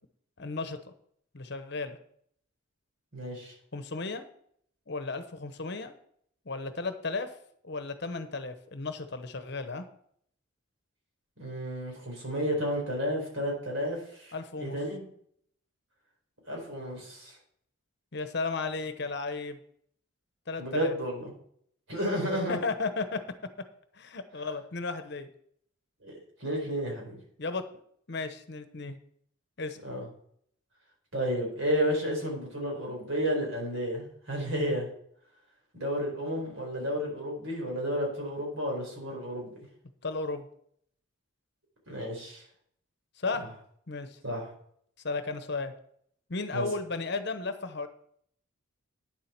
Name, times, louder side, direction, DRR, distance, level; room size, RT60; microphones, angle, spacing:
voice 1, 0.4-0.9 1.3-2.0 3.7-4.3 4.9-5.9 6.4-7.3 7.6-9.8 14.3-14.8 18.1-19.6 20.5-20.9 22.5-23.2 23.9-25.3 27.4-27.8 28.1-29.0 29.6-29.8 40.0-40.5 43.2-43.5 43.9-44.2 45.0-45.7 46.3-47.9, left 3 dB, 50° left, 9 dB, 1.0 m, -34 dB
voice 2, 3.1-3.5 11.4-15.0 16.5-17.4 20.6-21.3 21.9-22.6 26.0-27.2 29.8-30.0 31.1-34.9 35.7-39.5 41.9-42.4 44.2-44.5 46.5-46.7, equal, 70° right, 0 dB, 4.5 m, -32 dB
9.7 x 7.5 x 6.0 m, 0.66 s
head